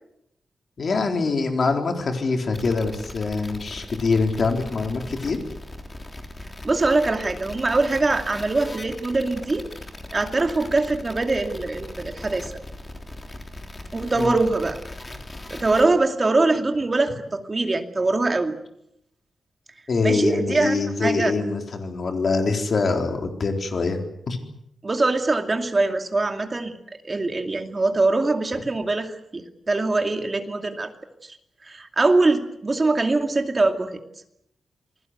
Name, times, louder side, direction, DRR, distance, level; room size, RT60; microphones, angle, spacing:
voice 1, 0.8-5.4 14.2-14.4 19.9-24.0 24.3-24.4, left 4 dB, 40° left, 4 dB, 4.0 m, -24 dB
sound 1, 2.5-15.9, left 1 dB, 20° left, 3.5 m, -39 dB
voice 2, 6.6-9.7 10.1-12.5 13.9-14.8 15.5-18.6 20.0-21.3 24.8-26.8 27.0-30.9 31.2-31.4 31.6-34.0, right 3 dB, 25° right, 5 dB, 2.5 m, -23 dB
28.5 x 21.0 x 8.2 m, 0.80 s
wide cardioid pair, 175°, 0 cm